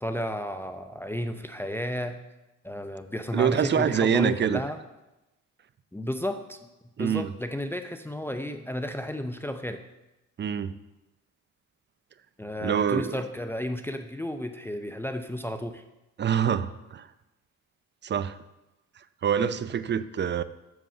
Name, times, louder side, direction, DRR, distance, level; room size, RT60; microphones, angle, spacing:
voice 1, 0.0-2.2 2.6-4.8 5.9-6.7 7.0-9.8 12.4-15.8, left 1 dB, 10° left, 7 dB, 0.6 m, -32 dB
voice 2, 3.3-4.6 7.0-7.3 10.4-10.7 12.6-13.2 16.2-17.1 18.0-18.4 19.2-20.4, right 8 dB, 35° right, 14 dB, 0.5 m, -25 dB
8.0 x 7.1 x 6.5 m, 0.99 s
cardioid pair, 90°, 30 cm